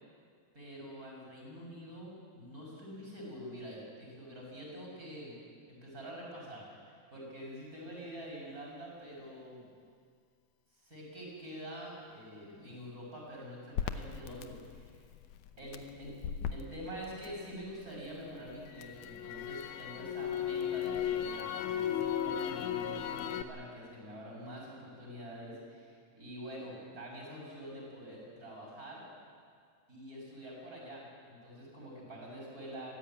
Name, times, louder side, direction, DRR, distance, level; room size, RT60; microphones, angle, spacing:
voice 1, 0.5-5.4 5.6-9.6 10.8-15.0 15.6-16.2 16.5-29.1 29.9-32.9, equal, 25° right, -3 dB, 6.8 m, -46 dB
Crackle, 13.8-17.9 18.3-23.4, left 9 dB, 80° left, 2.3 m, -36 dB
23.5 x 15.0 x 8.9 m, 2.1 s
omnidirectional pair, 3.6 m